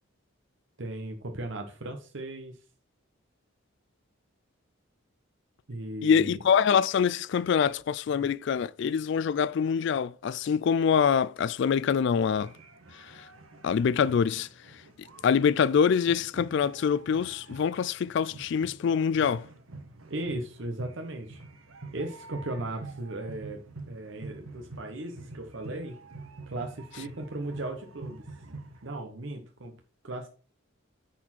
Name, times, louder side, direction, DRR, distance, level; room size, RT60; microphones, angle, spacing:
voice 1, 0.8-2.6 5.7-6.4 20.1-21.4 21.9-23.6 23.9-26.0 26.5-28.3 28.8-29.7 30.0-30.3, right 1 dB, 65° right, 0.9 m, -37 dB
voice 2, 6.0-12.5 12.9-13.3 13.6-14.5 15.2-19.5, left 7 dB, 60° left, 0.3 m, -25 dB
sound 1, 12.1-28.9, right 3 dB, 90° right, 1.2 m, -47 dB
10.0 x 4.2 x 4.4 m
head